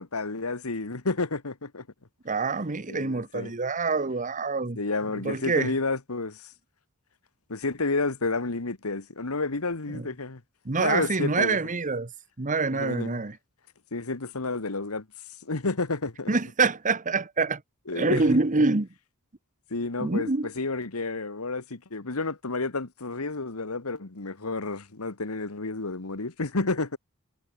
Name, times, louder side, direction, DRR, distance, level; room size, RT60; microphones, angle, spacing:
voice 1, 0.0-1.9 2.9-3.5 4.7-6.4 7.5-10.4 10.8-11.6 12.7-13.2 13.9-15.1 15.4-16.3 17.9-18.4 19.7-27.0, left 3 dB, 85° left, 1.6 m, -30 dB
voice 2, 2.2-4.8 5.2-5.7 9.9-10.1 10.6-12.1 12.4-13.4 16.3-17.6 17.9-18.9 20.0-20.5, right 3 dB, 35° right, 1.1 m, -26 dB
head